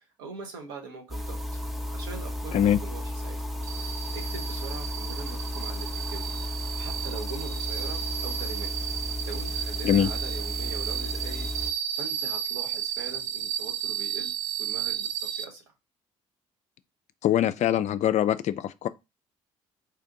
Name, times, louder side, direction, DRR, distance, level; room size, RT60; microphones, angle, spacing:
voice 1, 0.0-1.4 1.9-3.4 3.8-6.4 6.8-8.7 9.2-11.5 11.9-14.3 14.6-15.6, right 4 dB, 75° right, 1.0 m, -42 dB
sound 1, 1.1-11.7, left 1 dB, ahead, 0.8 m, -34 dB
sound 2, 3.6-15.4, right 10 dB, 55° right, 0.6 m, -33 dB
voice 2, 17.2-18.9, left 10 dB, 50° left, 0.4 m, -23 dB
4.3 x 2.5 x 3.7 m
hypercardioid pair, 50°, 16 cm